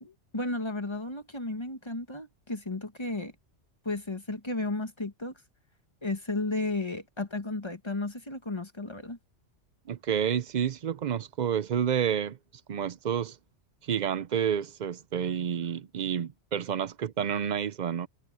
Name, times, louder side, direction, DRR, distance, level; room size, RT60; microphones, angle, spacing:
voice 1, 0.0-3.3 3.8-5.3 6.0-9.2, left 2 dB, 25° left, 1.6 m, -33 dB
voice 2, 9.9-12.4 12.7-13.4 13.8-18.1, right 8 dB, 50° right, 0.6 m, -29 dB
omnidirectional pair, 1.2 m